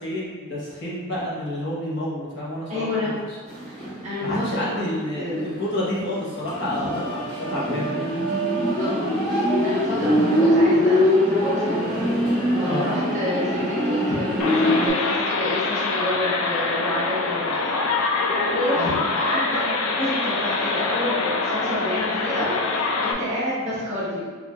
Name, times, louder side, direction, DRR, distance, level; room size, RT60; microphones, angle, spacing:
voice 1, 0.0-3.2 4.2-8.2 12.6-12.9 18.8-19.0, left 1 dB, 55° left, -6 dB, 1.0 m, -29 dB
voice 2, 2.7-3.1 4.0-4.9 5.2-5.4 6.8-6.9 8.8-11.8 12.5-17.7 18.5-18.9 19.1-24.3, left 1 dB, 35° right, -11 dB, 1.0 m, -29 dB
sound 1, 3.5-4.8 5.1-5.2 5.9-14.9, equal, 5° left, 1.0 m, -22 dB
sound 2, 14.4-23.1, left 3 dB, 80° left, 0.4 m, -24 dB
4.7 x 2.6 x 2.2 m, 1.5 s
head